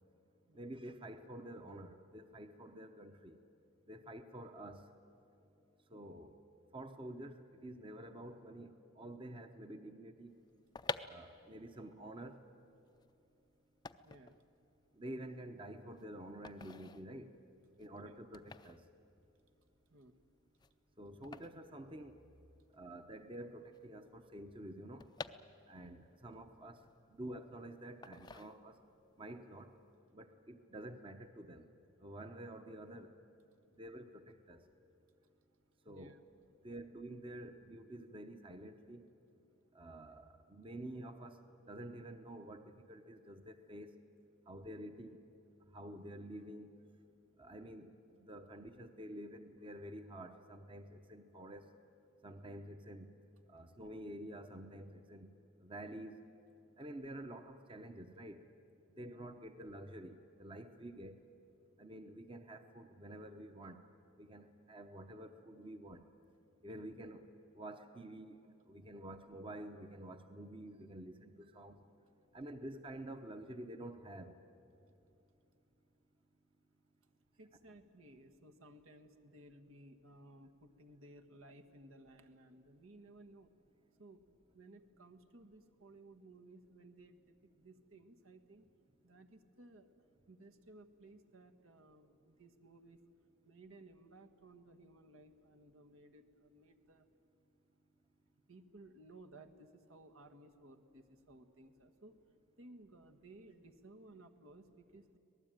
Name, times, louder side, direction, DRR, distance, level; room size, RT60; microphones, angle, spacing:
voice 1, 0.5-3.4 3.9-4.8 5.9-6.4 6.7-10.3 11.1-12.4 15.0-17.3 17.8-18.8 21.0-22.2 22.7-25.1 25.7-26.8 27.1-28.8 29.2-29.7 30.1-31.7 32.0-33.1 33.7-34.6 35.9-36.1 36.6-39.0 39.7-41.4 41.7-43.9 44.5-45.2 45.7-46.7 47.4-47.9 48.2-51.7 52.2-53.1 53.5-55.3 55.6-56.2 56.8-58.4 58.9-61.2 61.8-63.8 64.2-66.0 66.6-67.2 67.5-68.4 68.7-71.8 72.3-74.3, right 1 dB, 25° right, 8 dB, 0.8 m, -49 dB
sound 1, 10.5-22.6 22.9-23.0 23.2-26.0 26.4-27.5 28.0-29.0 29.4-29.7, left 4 dB, 20° left, 0.5 m, -49 dB
voice 2, 14.0-14.4 17.9-18.1 19.9-20.2 35.9-36.2 59.0-59.2 77.3-83.5 84.0-84.2 84.5-88.7 89.0-89.9 90.3-93.0 93.4-97.1 98.5-102.2 102.6-105.2, right 2 dB, 75° right, 6 dB, 1.5 m, -59 dB
25.5 x 18.5 x 9.0 m, 2.8 s
head